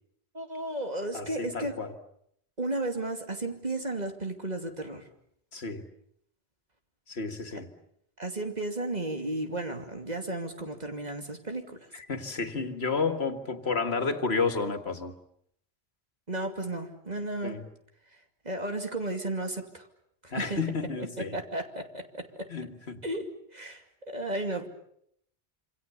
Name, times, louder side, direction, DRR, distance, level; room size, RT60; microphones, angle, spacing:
voice 1, 0.3-1.8 2.6-5.1 8.2-11.8 16.3-17.6 18.4-19.9 20.2-20.6 21.2-22.5 23.0-24.7, right 2 dB, 40° right, 5 dB, 2.7 m, -34 dB
voice 2, 1.1-1.9 5.5-5.8 7.1-7.7 11.9-15.1 17.4-17.6 20.3-21.4 22.5-23.0, left 4 dB, 90° left, 8 dB, 2.2 m, -31 dB
27.0 x 26.0 x 7.0 m, 0.72 s
omnidirectional pair, 1.0 m